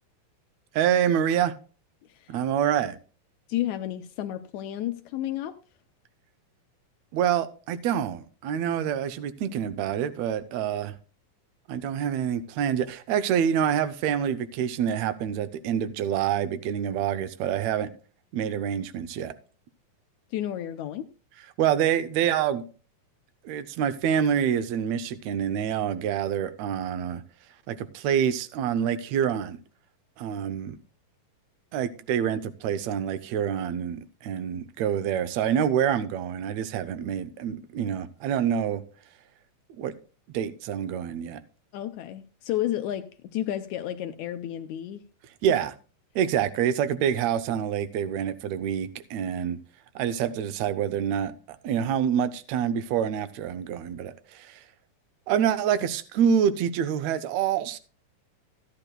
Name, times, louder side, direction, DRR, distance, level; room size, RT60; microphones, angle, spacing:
voice 1, 0.7-1.5 2.3-3.0 7.1-10.9 11.7-17.9 18.3-19.3 21.6-22.6 23.4-27.2 27.7-29.6 30.2-30.8 31.7-38.8 39.8-39.9 40.3-41.4 45.4-45.7 46.1-49.6 49.9-51.3 51.6-54.6 55.3-57.8, right 9 dB, 90° right, 1.5 m, -26 dB
voice 2, 3.5-5.6 20.3-21.1 41.7-45.0 45.5-45.6, left 12 dB, 80° left, 1.7 m, -31 dB
15.5 x 10.0 x 2.2 m
omnidirectional pair, 3.9 m